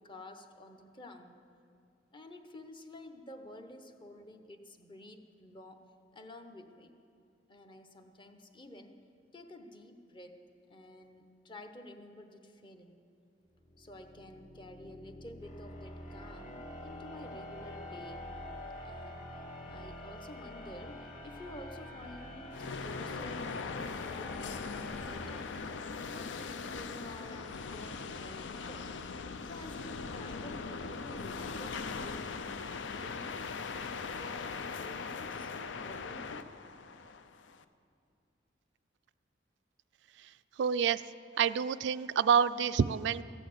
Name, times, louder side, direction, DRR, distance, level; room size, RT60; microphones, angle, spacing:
voice 1, 0.0-1.4 2.1-5.9 6.1-6.9 7.5-9.0 9.3-13.0 13.8-18.2 18.8-19.4 19.7-25.5 26.1-28.9 29.4-32.6 32.9-33.4 34.1-35.5 35.8-36.6, left 1 dB, 25° left, 6 dB, 0.9 m, -51 dB
sound 1, 13.6-26.5, left 1 dB, 45° left, 2.0 m, -47 dB
sound 2, 22.5-37.6, left 4 dB, 85° left, 0.6 m, -40 dB
voice 2, 40.6-41.0 41.4-43.2, right 7 dB, 70° right, 14 dB, 0.3 m, -28 dB
14.5 x 8.9 x 7.9 m, 2.4 s
head